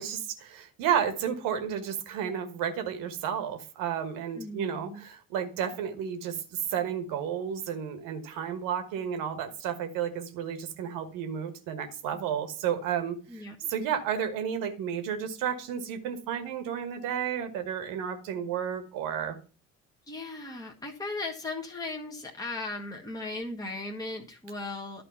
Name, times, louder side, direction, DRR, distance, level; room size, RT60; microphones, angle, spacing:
voice 1, 0.0-6.4 6.7-19.4, right 8 dB, 55° right, 8 dB, 1.3 m, -32 dB
voice 2, 4.4-5.0 13.3-13.7 20.1-25.0, left 2 dB, 10° left, 0 dB, 1.3 m, -37 dB
11.5 x 4.3 x 5.7 m, 0.38 s
figure-of-eight pair, 55°, 40 cm